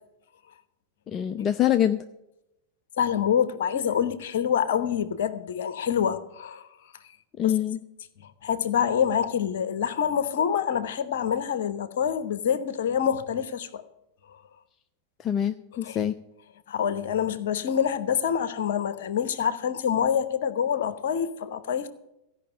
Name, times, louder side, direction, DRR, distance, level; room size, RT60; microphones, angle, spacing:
voice 1, 1.1-2.0 7.4-7.8 15.2-16.1, left 10 dB, 30° left, 9 dB, 0.5 m, -25 dB
voice 2, 3.0-6.7 7.4-7.5 8.2-13.8 15.8-16.0 16.7-21.9, left 8 dB, 55° left, 13 dB, 1.0 m, -26 dB
15.5 x 5.8 x 9.1 m, 0.88 s
figure-of-eight pair, 90°, 0 cm